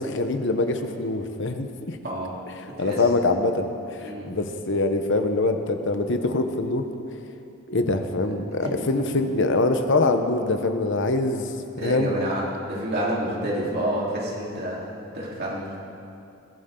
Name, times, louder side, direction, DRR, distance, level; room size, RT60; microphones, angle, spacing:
voice 1, 0.0-2.0 2.6-6.9 7.7-12.2, left 2 dB, 60° left, 7 dB, 1.1 m, -24 dB
voice 2, 2.0-2.4 2.6-3.0 4.0-4.3 8.6-8.8 11.8-15.8, right 1 dB, 50° right, -5 dB, 3.7 m, -29 dB
22.0 x 15.5 x 3.9 m, 2.6 s
head